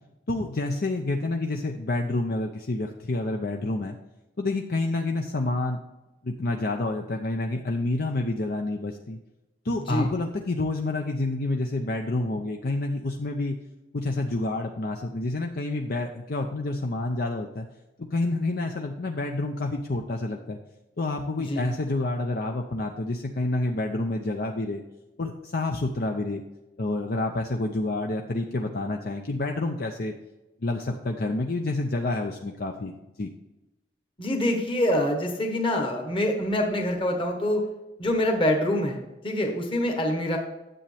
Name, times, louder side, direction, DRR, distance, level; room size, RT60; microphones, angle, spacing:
voice 1, 0.3-4.0 4.4-5.8 6.2-9.2 9.6-13.6 13.9-17.7 18.0-20.6 21.0-24.8 25.2-26.4 26.8-30.1 30.6-32.9 33.2-33.3, left 2 dB, 60° left, 3 dB, 0.6 m, -28 dB
voice 2, 34.2-37.6 38.0-40.4, left 1 dB, 30° left, 2 dB, 1.3 m, -25 dB
10.0 x 7.5 x 3.4 m, 1.0 s
head